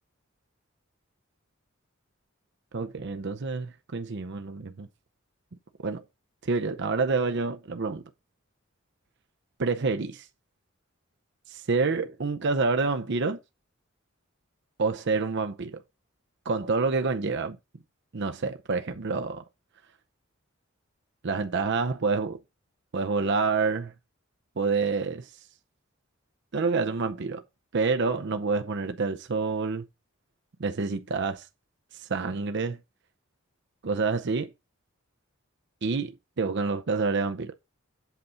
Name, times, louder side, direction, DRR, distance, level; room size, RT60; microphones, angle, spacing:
voice 1, 2.7-4.9 5.8-6.0 6.4-8.0 9.6-10.3 11.5-13.4 14.8-15.8 16.4-17.6 18.1-19.4 21.2-22.4 22.9-23.9 24.6-25.3 26.5-27.4 27.7-29.9 30.6-31.5 31.9-32.8 33.8-34.5 35.8-37.5, right 4 dB, 60° right, 0.7 m, -28 dB
8.2 x 3.9 x 5.7 m
head